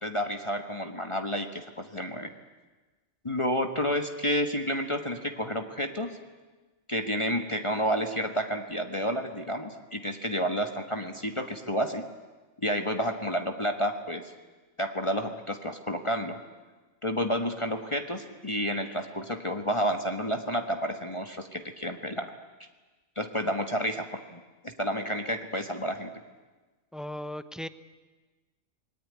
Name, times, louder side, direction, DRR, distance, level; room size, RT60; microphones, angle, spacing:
voice 1, 0.0-2.3 3.2-6.2 6.9-12.0 12.6-14.3 14.8-16.4 17.0-22.3 23.2-26.1, equal, 25° left, 5 dB, 1.3 m, -30 dB
voice 2, 26.9-27.7, left 1 dB, ahead, 12 dB, 0.7 m, -37 dB
27.0 x 20.0 x 9.5 m, 1.3 s
omnidirectional pair, 1.2 m